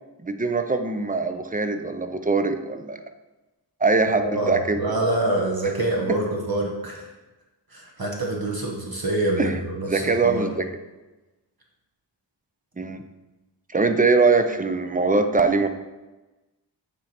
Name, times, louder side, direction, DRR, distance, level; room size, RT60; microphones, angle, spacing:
voice 1, 0.2-3.0 3.8-4.8 9.4-9.6 9.8-10.6 12.8-13.0 13.7-15.7, right 3 dB, 20° right, 8 dB, 0.5 m, -22 dB
voice 2, 4.2-7.1 7.7-10.5, right 2 dB, 50° right, -1 dB, 1.1 m, -26 dB
8.7 x 3.3 x 4.3 m, 1.1 s
wide cardioid pair, 50°, 45 cm